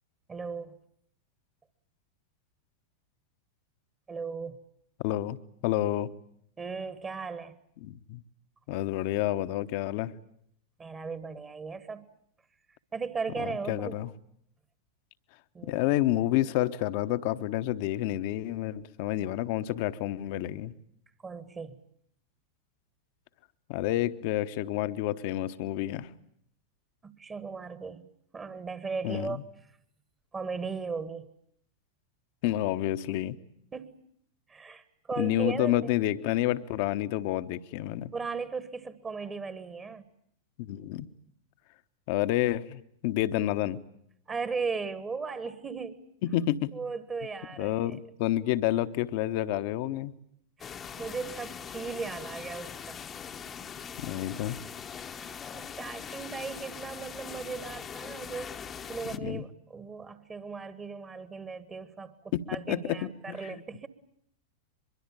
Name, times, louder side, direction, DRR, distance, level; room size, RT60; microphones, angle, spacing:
voice 1, 0.3-0.8 4.1-4.6 6.6-7.6 10.8-12.1 12.9-14.0 15.5-15.8 21.2-21.8 27.0-28.1 28.3-29.4 30.3-31.3 33.7-34.0 34.5-35.9 38.1-40.1 44.3-46.0 46.7-47.9 49.8-50.0 50.6-53.0 55.1-58.5 58.9-63.9, right 5 dB, 20° right, 14 dB, 1.4 m, -37 dB
voice 2, 5.0-6.1 7.8-8.2 8.7-10.1 13.4-14.1 15.6-20.7 23.7-26.1 29.0-29.4 32.4-33.4 35.2-38.1 40.6-41.1 42.1-43.8 46.2-46.7 47.6-50.1 54.0-54.6 59.2-59.4 62.3-63.6, left 14 dB, 45° left, 13 dB, 1.0 m, -29 dB
sound 1, 50.6-59.2, left 7 dB, 25° left, 1.0 m, -42 dB
23.5 x 23.0 x 8.8 m, 0.70 s
figure-of-eight pair, 90°, 0 cm